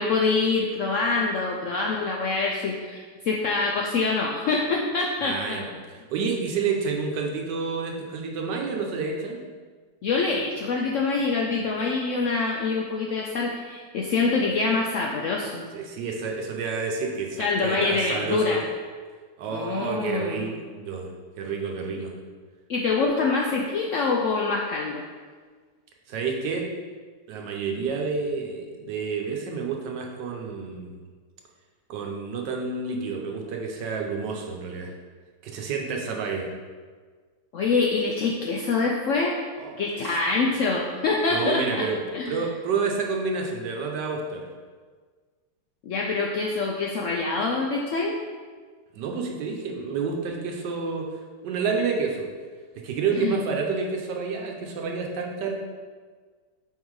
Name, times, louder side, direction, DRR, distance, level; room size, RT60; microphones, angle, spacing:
voice 1, 0.0-5.6 10.0-15.6 17.4-18.6 19.5-20.4 22.7-25.0 37.5-39.4 39.8-41.9 42.1-42.4 45.8-48.2 53.2-53.4, left 4 dB, 70° left, -1 dB, 0.7 m, -25 dB
voice 2, 5.2-5.7 6.1-9.4 15.7-18.6 19.4-21.1 21.4-22.2 26.1-26.7 27.3-31.0 31.9-34.9 35.4-36.5 39.6-40.2 40.6-40.8 41.3-42.0 42.3-44.5 48.9-52.3 52.7-55.5, right 5 dB, 80° right, 1 dB, 1.4 m, -29 dB
5.5 x 3.7 x 4.7 m, 1.5 s
omnidirectional pair, 1.8 m